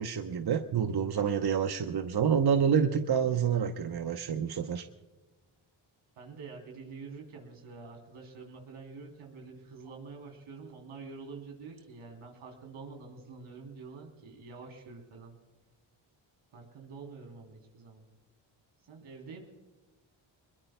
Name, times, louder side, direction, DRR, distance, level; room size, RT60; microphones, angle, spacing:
voice 1, 0.0-4.9, right 7 dB, 50° right, 7 dB, 1.0 m, -28 dB
voice 2, 6.2-15.4 16.5-18.1 18.9-19.4, right 4 dB, 80° right, 2 dB, 3.5 m, -47 dB
22.5 x 21.5 x 2.2 m, 1.2 s
supercardioid pair, 55°, 49 cm